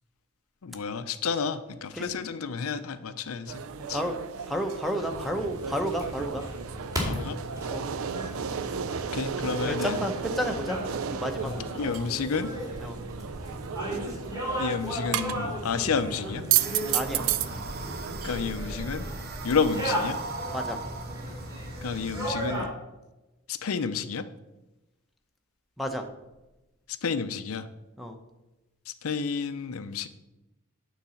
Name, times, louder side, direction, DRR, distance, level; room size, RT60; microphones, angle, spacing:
voice 1, 0.6-3.6 3.9-4.0 7.0-7.4 9.1-10.0 11.4-12.5 14.6-16.4 18.2-19.1 19.4-20.2 21.8-22.7 23.5-24.3 26.9-27.7 28.9-30.1, left 5 dB, 75° left, 11 dB, 0.5 m, -30 dB
sound 1, 3.5-18.7, right 9 dB, 70° right, 0.4 m, -33 dB
voice 2, 4.5-6.5 7.7-7.9 9.6-10.8 11.1-11.7 12.8-13.0 16.9-17.2 20.5-20.8 25.8-26.0 28.0-28.2, equal, ahead, 5 dB, 0.8 m, -31 dB
sound 2, 5.0-22.6, equal, 15° right, 2.2 m, -36 dB
sound 3, 16.5-22.3, right 3 dB, 45° right, 0.8 m, -39 dB
9.2 x 4.0 x 7.0 m, 1.0 s
head